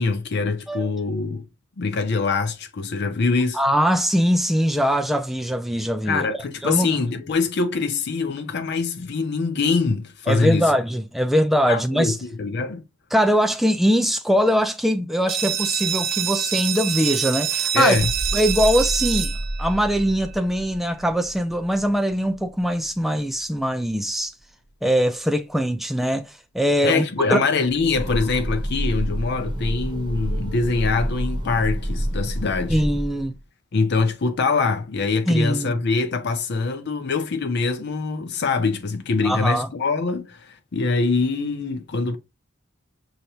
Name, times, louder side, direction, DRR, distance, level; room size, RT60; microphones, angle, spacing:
voice 1, 0.0-1.5 1.8-3.6 6.1-10.7 11.7-12.8 17.7-18.1 26.8-32.8 33.7-42.2, left 4 dB, 55° left, 0.5 m, -24 dB
voice 2, 3.5-6.9 10.3-12.2 13.1-18.0 18.3-24.3 24.8-27.0 27.3-27.4 32.7-33.3 35.3-35.8 39.2-39.7, equal, ahead, 0.3 m, -22 dB
sound 1, 15.3-20.7, right 9 dB, 45° right, 0.6 m, -26 dB
sound 2, 18.0-23.7 23.9-24.2, right 1 dB, 85° left, 1.1 m, -32 dB
Train, 27.6-33.4, equal, 20° right, 1.0 m, -28 dB
6.5 x 2.9 x 2.8 m
head